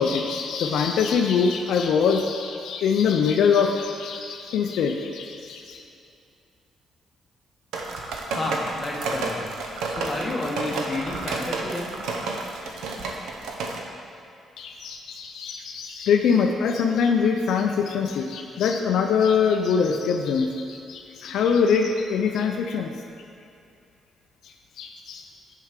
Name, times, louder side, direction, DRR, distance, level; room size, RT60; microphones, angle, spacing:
voice 1, 0.0-5.8 14.6-22.9 24.4-25.2, left 6 dB, 75° left, 3 dB, 0.4 m, -23 dB
sound 1, 7.7-13.8, right 3 dB, 85° right, 0.7 m, -31 dB
voice 2, 8.3-9.4 9.9-12.0, left 1 dB, 20° left, -3 dB, 1.3 m, -30 dB
6.3 x 4.6 x 5.0 m, 2.6 s
cardioid pair, 90°, 0 cm